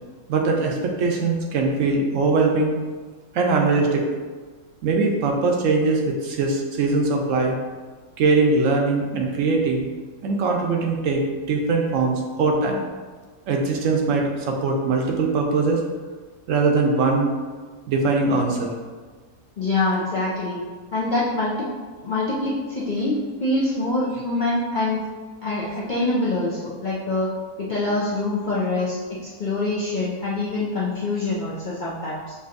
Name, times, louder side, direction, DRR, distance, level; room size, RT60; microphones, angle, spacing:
voice 1, 0.3-2.7 3.3-4.1 4.8-7.5 8.2-9.9 10.2-12.8 13.5-15.8 16.5-17.3 17.9-18.7, right 3 dB, 70° right, 1 dB, 0.9 m, -21 dB
voice 2, 19.6-20.6 20.9-21.5 22.0-25.0 25.4-27.3 27.6-32.3, left 2 dB, 55° left, -7 dB, 0.5 m, -25 dB
6.2 x 2.7 x 2.5 m, 1.4 s
omnidirectional pair, 1.5 m